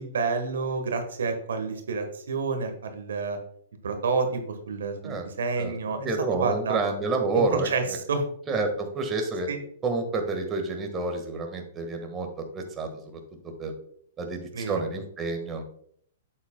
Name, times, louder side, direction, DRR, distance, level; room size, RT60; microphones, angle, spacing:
voice 1, 0.0-3.4 3.8-6.1 6.4-6.8 7.3-8.2 9.5-9.6 14.5-14.8, right 4 dB, 75° right, 7 dB, 1.2 m, -29 dB
voice 2, 5.6-7.7 8.5-9.5 9.8-13.2 13.6-13.7 14.2-15.6, right 3 dB, 20° right, 3 dB, 1.5 m, -29 dB
8.1 x 8.0 x 2.2 m, 0.63 s
hypercardioid pair, 120°, 0 cm